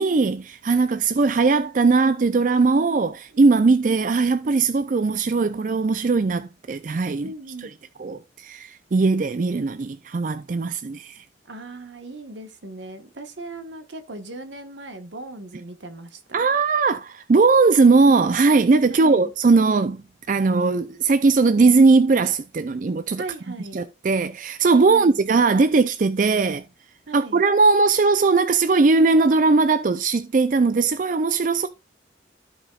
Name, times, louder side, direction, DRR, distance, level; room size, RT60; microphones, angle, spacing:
voice 1, 0.0-7.3 7.6-7.7 8.0-11.2 16.3-23.2 23.7-26.6 27.1-31.7, right 4 dB, 45° right, 0.4 m, -19 dB
voice 2, 7.2-7.7 11.4-16.5 18.9-19.3 23.2-23.8 24.9-25.2 27.1-27.4, right 2 dB, 80° right, 1.3 m, -38 dB
14.5 x 5.0 x 2.4 m
head